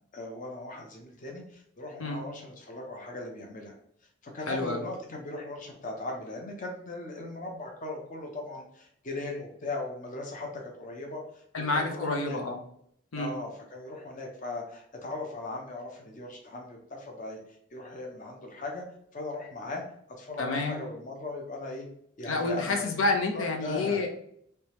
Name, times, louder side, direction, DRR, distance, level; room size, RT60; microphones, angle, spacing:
voice 1, 0.1-3.8 4.3-11.4 11.7-12.4 13.2-17.4 17.7-18.8 19.1-19.8 20.2-21.9 22.2-22.9 23.3-24.0, left 2 dB, 40° left, 2 dB, 0.7 m, -38 dB
voice 2, 4.5-4.8 11.5-12.6 13.1-13.3 20.4-20.8 22.3-24.1, left 3 dB, 85° left, 3 dB, 0.7 m, -29 dB
3.3 x 3.2 x 3.0 m, 0.68 s
head